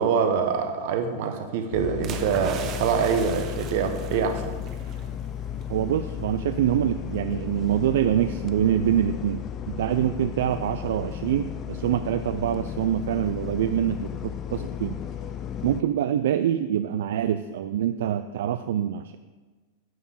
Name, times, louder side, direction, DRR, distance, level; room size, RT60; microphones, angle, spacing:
voice 1, 0.0-4.5, right 6 dB, 50° right, 1.0 m, -25 dB
sound 1, 1.7-15.8, left 9 dB, 20° left, 0.4 m, -34 dB
sound 2, 2.0-5.1 5.4-5.6, right 7 dB, 25° right, 0.7 m, -39 dB
voice 2, 5.7-15.0 15.6-19.2, right 10 dB, 70° right, 0.3 m, -25 dB
9.2 x 4.4 x 7.3 m
supercardioid pair, 170°, 0 cm